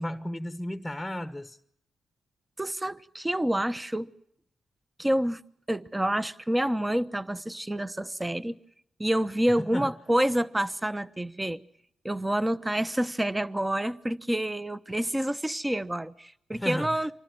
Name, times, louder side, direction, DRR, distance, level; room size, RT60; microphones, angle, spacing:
voice 1, 0.0-1.6 9.6-9.9 16.5-17.0, left 1 dB, 5° left, 1.3 m, -34 dB
voice 2, 2.6-4.1 5.0-5.4 5.7-8.6 9.0-11.6 12.0-17.1, right 1 dB, 15° right, 1.0 m, -28 dB
25.5 x 19.0 x 7.6 m
supercardioid pair, 50°, 0 cm